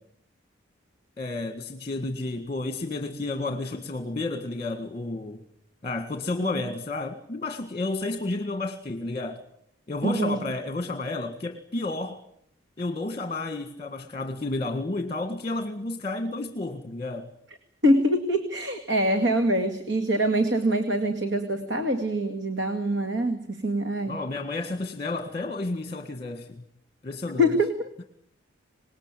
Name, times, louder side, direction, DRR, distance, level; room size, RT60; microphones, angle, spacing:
voice 1, 1.2-5.4 5.8-9.4 9.9-12.2 12.8-17.3 24.1-26.6 27.0-27.5, left 2 dB, 30° left, 1.8 m, -31 dB
voice 2, 10.0-10.4 17.8-24.2 27.4-27.9, equal, 60° right, 2.1 m, -24 dB
26.5 x 20.0 x 9.2 m
head